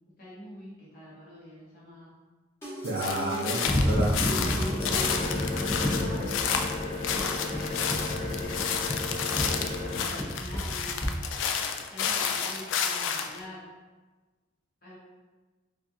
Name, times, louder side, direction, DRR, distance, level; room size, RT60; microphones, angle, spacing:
voice 1, 0.2-2.1 3.3-3.7 4.2-6.2 6.8-11.4 11.9-13.6 14.8-15.0, equal, 50° left, -8 dB, 1.4 m, -45 dB
sound 1, 2.6-6.1, equal, 15° left, 1.3 m, -38 dB
voice 2, 2.8-4.2, right 1 dB, 70° right, -5 dB, 0.5 m, -30 dB
sound 2, 3.0-13.4, left 7 dB, 85° left, 0.3 m, -31 dB
sound 3, 3.6-11.1, left 1 dB, 30° left, 1.4 m, -30 dB
4.4 x 2.5 x 2.7 m, 1.3 s
head